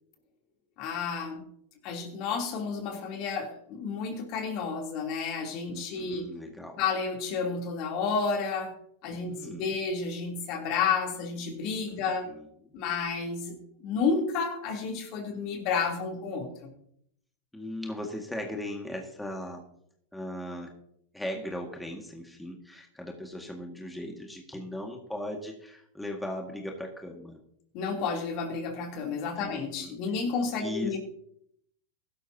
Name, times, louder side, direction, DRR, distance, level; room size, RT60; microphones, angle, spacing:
voice 1, 0.8-1.4 1.8-6.3 6.8-8.7 9.0-12.3 12.7-16.7 27.7-31.0, left 5 dB, 50° left, 2 dB, 3.1 m, -31 dB
voice 2, 5.7-6.8 9.2-9.7 11.9-12.4 17.5-19.6 20.1-20.7 21.1-27.4 29.4-30.0 30.6-31.0, left 1 dB, 5° left, 1 dB, 1.9 m, -38 dB
16.0 x 12.5 x 2.8 m, 0.70 s
hypercardioid pair, 105°, 0 cm